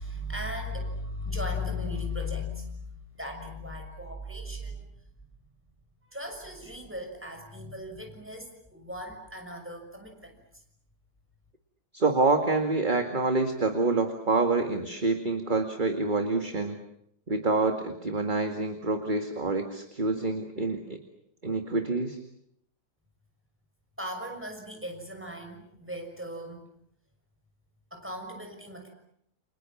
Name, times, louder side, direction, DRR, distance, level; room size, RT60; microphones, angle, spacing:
voice 1, 0.0-4.9 6.1-10.4 24.0-26.7 27.9-28.9, left 2 dB, 5° right, 4 dB, 6.3 m, -37 dB
voice 2, 11.9-16.8 17.3-21.0 21.4-22.2, right 3 dB, 30° right, 6 dB, 2.1 m, -27 dB
30.0 x 27.5 x 7.2 m, 0.71 s
omnidirectional pair, 1.9 m